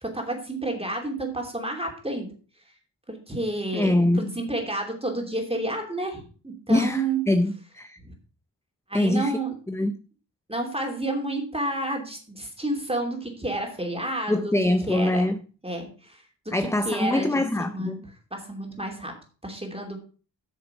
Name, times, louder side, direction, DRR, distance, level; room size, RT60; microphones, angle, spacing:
voice 1, 0.0-2.3 3.1-7.2 8.0-8.1 8.9-9.5 10.5-14.5 14.8-15.3 15.6-17.3 17.6-18.0 18.3-19.2 19.4-20.0, right 2 dB, 15° right, 2.9 m, -30 dB
voice 2, 3.7-4.4 6.7-8.0 8.9-9.4 9.7-10.0 14.3-15.4 16.5-18.1, left 1 dB, 5° left, 0.5 m, -24 dB
8.4 x 6.5 x 5.7 m
wide cardioid pair, 80°, 45 cm